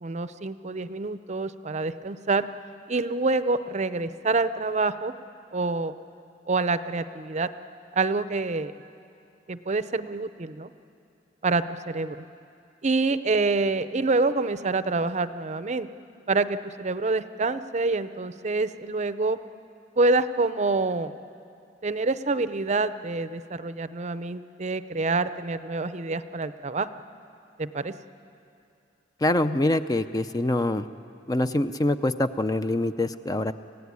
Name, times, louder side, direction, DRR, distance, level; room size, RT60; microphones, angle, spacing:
voice 1, 0.0-2.5 2.9-5.1 5.5-5.9 6.5-7.5 7.9-8.7 9.5-10.7 11.4-12.2 12.8-15.9 16.3-19.4 20.0-21.1 21.8-26.9 27.6-27.9, right 3 dB, 40° right, 13 dB, 0.6 m, -26 dB
voice 2, 29.2-30.9 31.3-33.5, left 1 dB, 20° left, 10 dB, 0.5 m, -25 dB
25.0 x 16.5 x 9.6 m, 2.5 s
head